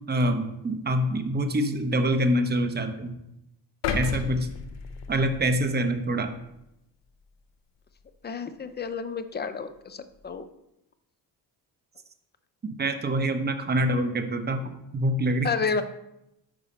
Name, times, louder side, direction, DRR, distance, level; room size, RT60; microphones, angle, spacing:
voice 1, 0.1-3.1 3.9-4.5 5.1-6.3 12.8-14.6 14.9-15.5, right 1 dB, 25° right, 7 dB, 0.7 m, -25 dB
sound 1, 3.8-6.0 6.5-6.6, left 6 dB, 75° left, 0.7 m, -33 dB
voice 2, 8.2-10.5 15.4-15.8, left 5 dB, 25° left, 11 dB, 0.4 m, -30 dB
4.8 x 4.2 x 5.2 m, 0.86 s
cardioid pair, 80°, 44 cm